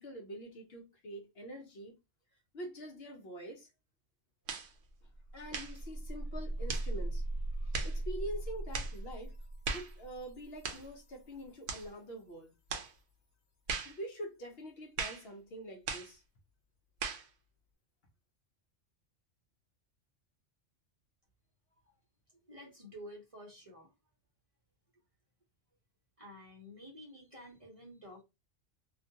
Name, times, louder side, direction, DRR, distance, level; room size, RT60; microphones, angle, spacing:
voice 1, 0.0-2.0 2.5-3.7 5.3-7.2 7.6-9.4 9.7-12.5 13.8-16.2, right 1 dB, 60° left, 0.8 m, -45 dB
sound 1, 4.5-4.7 5.5-5.8 6.7-6.9 7.7-8.0 8.7-9.0 9.6-9.9 10.6-10.9 11.7-11.9 12.7-12.9 13.7-14.0 15.0-15.3 15.9-16.1 17.0-17.3, right 5 dB, 65° right, 0.8 m, -38 dB
sound 2, 4.9-11.7, right 1 dB, 90° left, 1.1 m, -40 dB
voice 2, 22.4-23.9 24.9-25.0 26.2-28.2, equal, 35° right, 0.7 m, -51 dB
2.5 x 2.2 x 2.7 m
omnidirectional pair, 1.3 m